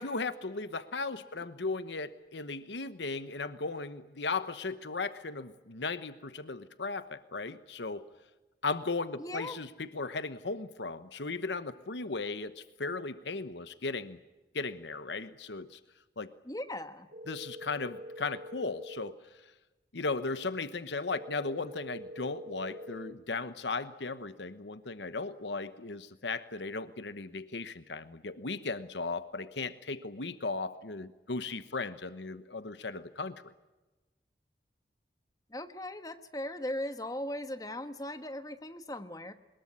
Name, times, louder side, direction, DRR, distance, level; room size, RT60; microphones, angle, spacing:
voice 1, 0.0-8.1 8.6-14.2 14.5-15.8 16.2-16.3 17.3-19.1 19.9-33.5, left 3 dB, 85° left, 12 dB, 1.1 m, -36 dB
voice 2, 9.2-9.6 16.4-17.1 35.5-39.3, left 1 dB, 20° left, 9 dB, 1.3 m, -38 dB
sound 1, 17.1-19.1 21.1-23.1, equal, 60° right, 2.8 m, -45 dB
22.5 x 21.0 x 9.8 m, 1.1 s
head